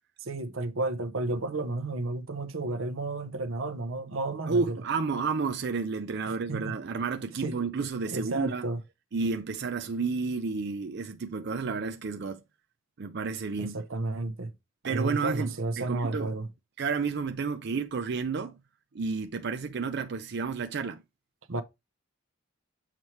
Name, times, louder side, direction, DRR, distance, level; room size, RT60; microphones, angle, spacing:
voice 1, 0.2-4.8 6.3-6.8 7.4-7.6 8.1-8.8 13.6-14.5 14.8-16.5 21.5-21.6, right 2 dB, 90° right, 0.8 m, -32 dB
voice 2, 4.5-8.7 9.1-12.4 13.0-13.8 14.8-16.3 16.8-18.6 18.9-21.0, right 4 dB, 55° right, 0.5 m, -31 dB
7.2 x 3.2 x 4.4 m
head